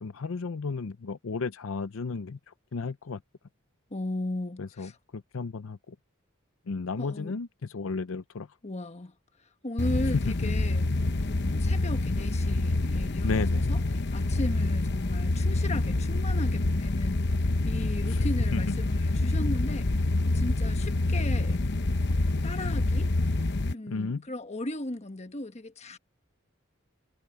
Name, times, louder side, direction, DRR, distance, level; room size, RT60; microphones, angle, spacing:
voice 1, 0.0-3.2 4.6-6.0 6.7-8.5 10.1-10.5 13.2-13.7 18.1-18.6 23.9-24.2, left 4 dB, 75° left, 0.6 m, -33 dB
voice 2, 3.9-5.0 7.0-7.4 8.6-9.1 9.6-10.9 11.3-13.8 14.1-17.3 17.6-19.9 20.2-21.6 22.4-23.1 23.7-26.0, left 1 dB, 30° left, 1.3 m, -36 dB
sound 1, 9.8-23.7, left 2 dB, 55° left, 0.9 m, -27 dB
head